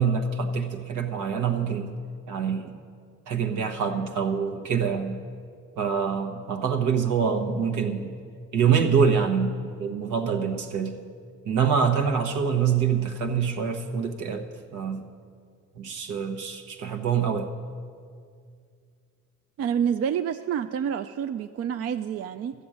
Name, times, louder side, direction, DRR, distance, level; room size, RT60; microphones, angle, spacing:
voice 1, 0.0-1.9 2.3-2.7 3.3-5.2 5.8-8.1 8.5-11.0 11.4-14.5 14.7-15.1 15.7-17.5, right 6 dB, 80° right, 3 dB, 1.2 m, -25 dB
voice 2, 19.6-22.5, right 8 dB, 55° right, 9 dB, 0.4 m, -28 dB
13.5 x 7.0 x 8.7 m, 2.2 s
cardioid pair, 90°, 30 cm